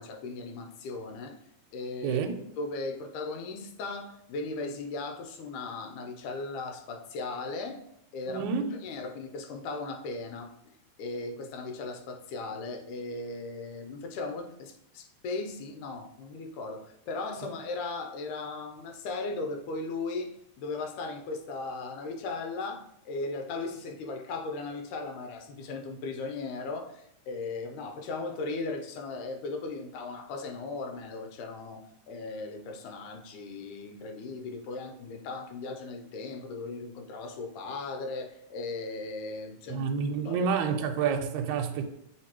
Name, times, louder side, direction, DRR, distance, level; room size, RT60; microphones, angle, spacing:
voice 1, 0.0-1.4 1.7-2.2 2.6-7.8 8.1-10.5 11.0-39.9 40.3-40.5 40.8-40.9, left 3 dB, 80° left, 2.2 m, -37 dB
voice 2, 8.3-8.7 39.7-41.8, right 6 dB, 80° right, 1.9 m, -28 dB
8.2 x 3.9 x 2.9 m
omnidirectional pair, 3.6 m